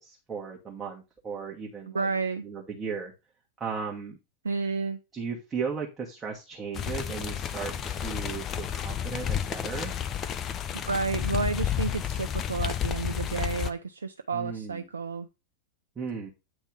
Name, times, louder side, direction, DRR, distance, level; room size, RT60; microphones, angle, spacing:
voice 1, 0.0-2.1 2.4-3.1 3.6-4.2 5.1-9.9 14.3-14.9 15.9-16.3, right 5 dB, 20° right, -1 dB, 1.4 m, -36 dB
voice 2, 1.9-2.4 4.4-5.0 10.7-15.3, right 4 dB, 75° right, 8 dB, 0.4 m, -31 dB
sound 1, 6.7-13.7, left 9 dB, 30° left, 0.6 m, -31 dB
8.5 x 3.5 x 4.7 m, 0.27 s
figure-of-eight pair, 90°, 0 cm